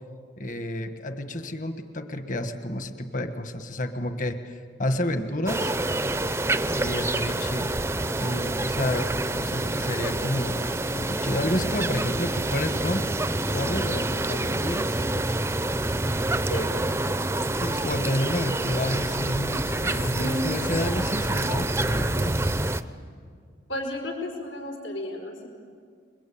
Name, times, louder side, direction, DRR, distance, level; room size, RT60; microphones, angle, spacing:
voice 1, 0.4-5.7 6.8-7.7 8.2-9.1 9.4-13.1 13.5-15.0 17.5-22.3, left 1 dB, 40° left, 8 dB, 1.5 m, -30 dB
sound 1, 5.5-22.8, right 2 dB, 15° right, 0.6 m, -27 dB
voice 2, 20.0-20.5 23.7-25.5, left 1 dB, 85° left, 2 dB, 4.6 m, -32 dB
29.0 x 22.5 x 8.7 m, 2.1 s
head